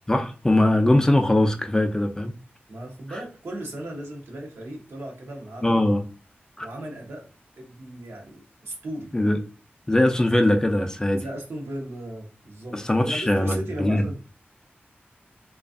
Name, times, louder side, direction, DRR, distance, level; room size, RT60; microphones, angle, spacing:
voice 1, 0.1-2.3 5.6-6.0 6.6-6.7 9.1-9.4 9.9-11.2 12.7-14.1, left 1 dB, 15° left, 0.3 m, -21 dB
voice 2, 2.7-5.8 6.6-7.3 7.6-9.2 11.2-14.2, right 1 dB, 75° right, 0.8 m, -36 dB
2.4 x 2.3 x 2.4 m
wide cardioid pair, 95°, 4 cm